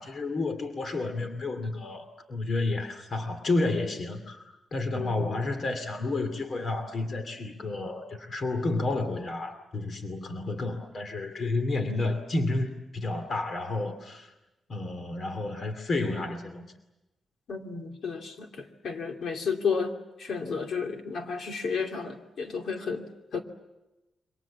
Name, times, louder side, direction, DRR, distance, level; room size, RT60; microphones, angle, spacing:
voice 1, 0.0-14.3 14.7-16.7, left 2 dB, 40° left, 8 dB, 2.6 m, -31 dB
voice 2, 4.9-5.3 17.5-19.9 20.2-23.0 23.3-23.4, left 5 dB, 65° left, 3 dB, 2.8 m, -32 dB
28.0 x 25.0 x 7.3 m, 1.0 s
wide cardioid pair, 165°, 0 cm